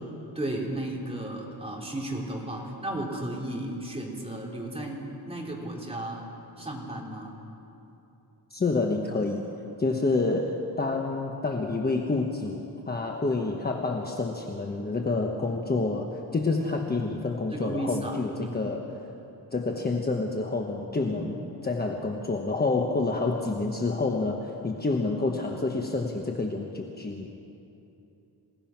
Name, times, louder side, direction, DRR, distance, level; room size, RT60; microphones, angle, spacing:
voice 1, 0.4-6.2 6.6-7.4 17.5-18.7 21.1-21.3, right 1 dB, 15° right, -2 dB, 3.5 m, -34 dB
voice 2, 8.5-9.5 9.8-18.8 19.5-21.4 21.6-27.5, left 3 dB, 25° left, 1 dB, 1.2 m, -28 dB
28.0 x 17.0 x 5.9 m, 2.9 s
wide cardioid pair, 160°, 39 cm